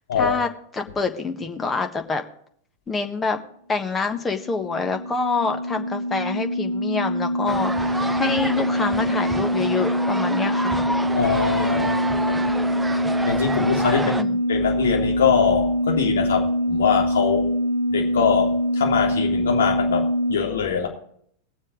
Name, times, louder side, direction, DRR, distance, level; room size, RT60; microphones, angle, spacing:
voice 1, 0.2-2.2 2.9-3.4 3.7-10.8 14.0-14.4, left 4 dB, 15° left, 5 dB, 1.4 m, -26 dB
sound 1, 4.2-20.3, equal, 85° left, 2.1 m, -24 dB
sound 2, 7.5-14.2, right 2 dB, 5° right, 0.6 m, -29 dB
voice 2, 11.1-11.9 12.3-12.4 13.2-14.1 14.5-17.5 17.9-20.9, left 7 dB, 65° left, 0 dB, 3.3 m, -23 dB
19.5 x 7.4 x 4.9 m, 0.63 s
figure-of-eight pair, 90°, 0 cm